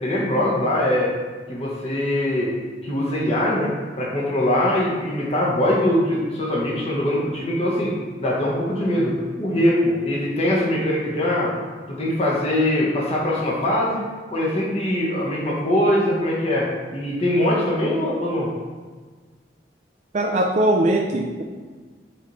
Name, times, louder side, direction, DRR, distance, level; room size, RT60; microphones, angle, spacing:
voice 1, 0.0-1.1 1.5-2.5 2.8-11.5 11.9-18.5, left 1 dB, 35° left, -5 dB, 1.2 m, -22 dB
voice 2, 20.1-21.4, right 1 dB, 40° right, 0 dB, 0.5 m, -20 dB
7.2 x 4.1 x 3.2 m, 1.4 s
head